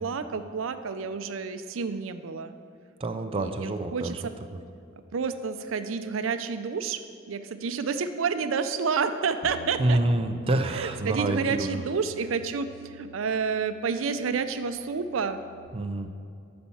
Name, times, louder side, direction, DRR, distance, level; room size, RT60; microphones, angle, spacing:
voice 1, 0.0-2.5 3.4-4.3 5.1-7.0 7.3-10.0 10.7-15.4, right 5 dB, 80° right, 10 dB, 0.5 m, -29 dB
voice 2, 3.0-4.2 9.8-11.8 15.7-16.1, right 1 dB, 30° right, 6 dB, 0.4 m, -27 dB
Bass guitar, 9.4-15.7, right 5 dB, 40° left, 0.8 m, -48 dB
11.5 x 4.3 x 7.0 m, 2.4 s
head